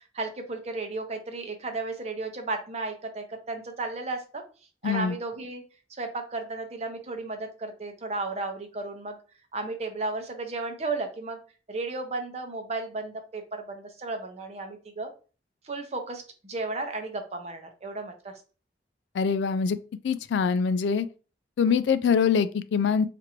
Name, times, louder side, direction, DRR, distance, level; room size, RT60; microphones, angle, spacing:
voice 1, 0.1-4.4 4.8-5.6 6.0-9.2 9.5-11.4 11.7-15.1 15.6-18.3, right 3 dB, 40° right, 0.6 m, -34 dB
voice 2, 4.8-5.2 19.1-19.8 20.0-21.1 21.6-23.1, left 6 dB, 80° left, 0.3 m, -24 dB
4.4 x 2.5 x 2.9 m
head